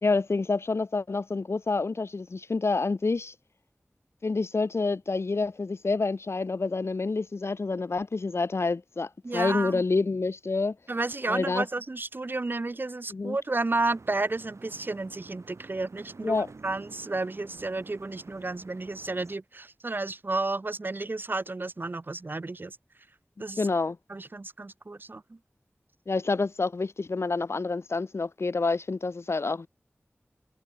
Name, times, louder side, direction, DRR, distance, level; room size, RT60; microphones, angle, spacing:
voice 1, 0.0-3.3 4.2-10.8 11.3-11.7 13.1-13.4 16.2-16.5 23.6-24.0 26.1-29.7, left 3 dB, 65° left, 0.7 m, -28 dB
voice 2, 9.2-9.8 10.9-22.8 23.4-23.6 24.1-25.4, right 2 dB, 45° right, 0.5 m, -32 dB
sound 1, 13.7-19.4, right 4 dB, 85° right, 5.3 m, -50 dB
wide cardioid pair, 45°, 5 cm